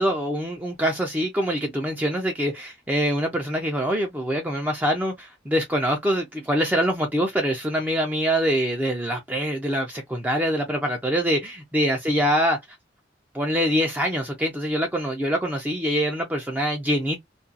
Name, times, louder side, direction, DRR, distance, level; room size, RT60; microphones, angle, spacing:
voice 1, 0.0-12.6 13.3-17.3, equal, 10° right, 0.4 m, -24 dB
2.4 x 2.3 x 2.6 m
head